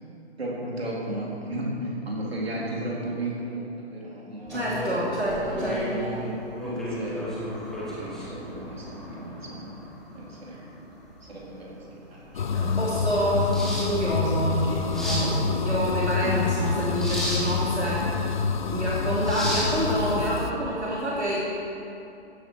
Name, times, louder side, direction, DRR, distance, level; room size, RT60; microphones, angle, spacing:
voice 1, 0.4-4.8 5.1-5.2 5.6-7.4 7.8-9.8 10.1-10.7 11.2-12.4 16.2-16.4, right 1 dB, 65° right, -4 dB, 3.7 m, -34 dB
sound 1, 4.5-20.7, equal, ahead, 1.5 m, -35 dB
voice 2, 4.5-6.1 12.5-21.4, equal, 85° right, -7 dB, 3.0 m, -27 dB
sound 2, 12.3-20.5, left 5 dB, 45° left, 0.7 m, -27 dB
15.0 x 9.9 x 4.8 m, 2.7 s
figure-of-eight pair, 135°, 33 cm